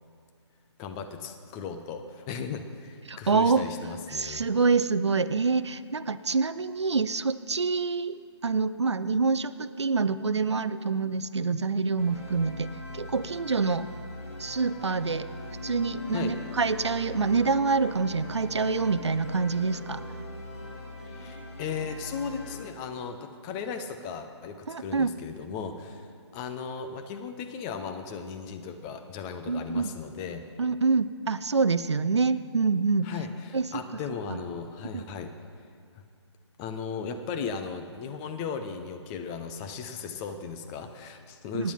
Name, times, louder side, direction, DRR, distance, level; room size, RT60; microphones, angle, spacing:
voice 1, 0.8-4.5 16.1-16.4 21.0-30.5 33.0-35.3 36.6-41.7, left 6 dB, 10° left, 7 dB, 0.3 m, -36 dB
voice 2, 3.1-3.6 4.1-8.2 8.4-13.9 14.4-15.3 15.6-20.0 24.7-25.1 29.5-29.9 30.6-33.1 33.5-33.6 34.3-34.4 34.9-35.0 41.5-41.7, right 4 dB, 70° right, 14 dB, 0.5 m, -26 dB
sound 1, 12.0-22.6, left 2 dB, 30° left, 3.5 m, -41 dB
Wind instrument woodwind instrument, 15.6-19.8, right 1 dB, 30° right, 2.3 m, -48 dB
15.0 x 9.8 x 5.6 m, 2.3 s
figure-of-eight pair, 140°, 15 cm